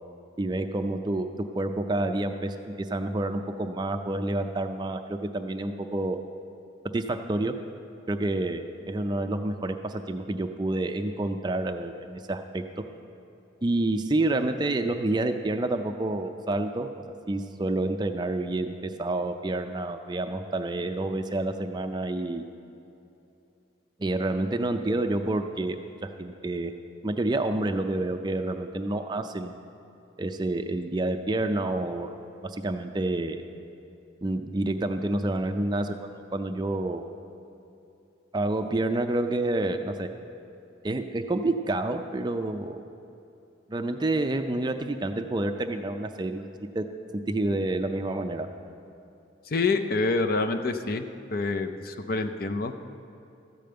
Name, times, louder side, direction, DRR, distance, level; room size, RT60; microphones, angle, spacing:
voice 1, 0.4-1.3 1.5-6.2 6.9-7.5 8.1-12.6 13.6-22.4 24.0-25.8 26.0-26.7 27.0-29.5 30.2-32.1 32.4-33.4 34.2-37.1 38.3-40.1 40.8-42.8 43.7-46.5 46.7-46.8 47.3-48.5, right 2 dB, 20° right, 7 dB, 0.4 m, -28 dB
voice 2, 49.5-51.1 51.3-52.8, left 3 dB, 50° left, 7 dB, 0.5 m, -27 dB
14.0 x 5.2 x 7.6 m, 2.8 s
head